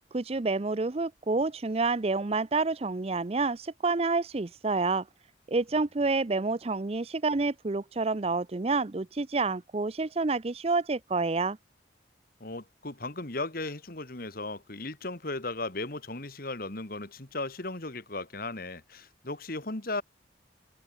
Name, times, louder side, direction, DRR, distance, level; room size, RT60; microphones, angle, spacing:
voice 1, 0.1-5.0 5.5-11.6, right 3 dB, 30° right, 0.5 m, -28 dB
voice 2, 12.4-20.0, left 2 dB, 50° left, 2.0 m, -36 dB
head